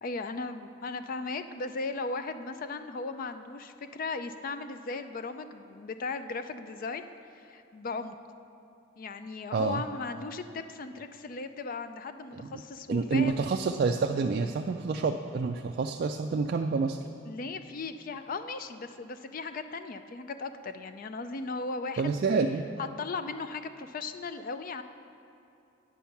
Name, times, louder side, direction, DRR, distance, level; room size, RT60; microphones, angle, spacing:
voice 1, 0.0-7.1 7.3-8.2 9.0-13.5 17.2-22.1 22.8-24.8, left 3 dB, 45° left, 10 dB, 0.4 m, -37 dB
voice 2, 12.9-17.0 22.0-22.6, right 4 dB, 50° right, 3 dB, 0.3 m, -28 dB
8.4 x 7.0 x 5.8 m, 2.8 s
head